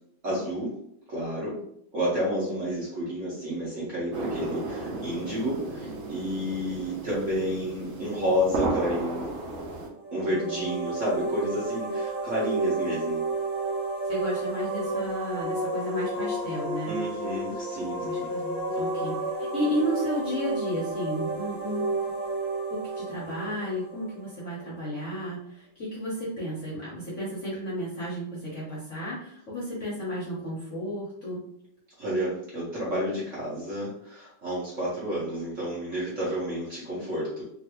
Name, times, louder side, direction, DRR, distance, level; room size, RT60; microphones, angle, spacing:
voice 1, 0.2-0.7 1.1-1.6 1.9-9.3 10.1-13.2 16.8-18.3 32.0-37.4, equal, 55° right, -7 dB, 0.9 m, -30 dB
sound 1, 4.1-9.9, right 2 dB, 90° right, 0.7 m, -34 dB
sound 2, 9.9-24.6, right 2 dB, 20° right, 0.6 m, -31 dB
voice 2, 10.2-10.7 14.1-16.9 18.0-21.9 22.7-31.4, equal, 60° left, -6 dB, 0.8 m, -33 dB
3.1 x 2.5 x 2.9 m, 0.72 s
omnidirectional pair, 2.2 m